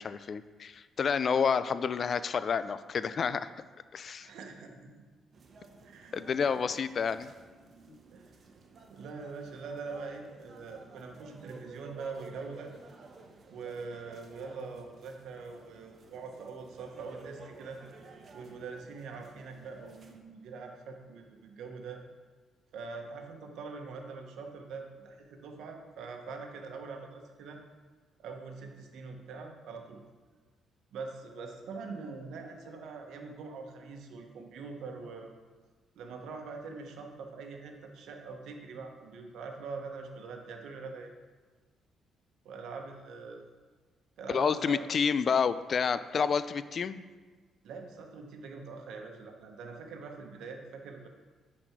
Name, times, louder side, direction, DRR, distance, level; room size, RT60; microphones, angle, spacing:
voice 1, 0.0-3.5 3.9-4.3 6.1-7.3 7.9-8.0 44.3-47.0, left 6 dB, 50° left, 14 dB, 0.3 m, -29 dB
voice 2, 4.2-5.0 5.8-6.2 8.1-8.3 8.9-12.7 13.5-17.8 18.3-22.0 22.7-27.6 28.2-30.0 30.9-35.3 35.9-41.1 42.4-43.5 44.2-44.8 47.6-51.1, right 4 dB, 80° right, 3 dB, 1.0 m, -43 dB
sound 1, 5.3-20.2, right 3 dB, 50° right, 1.0 m, -53 dB
10.0 x 4.2 x 4.6 m, 1.4 s
cardioid pair, 90°, 0 cm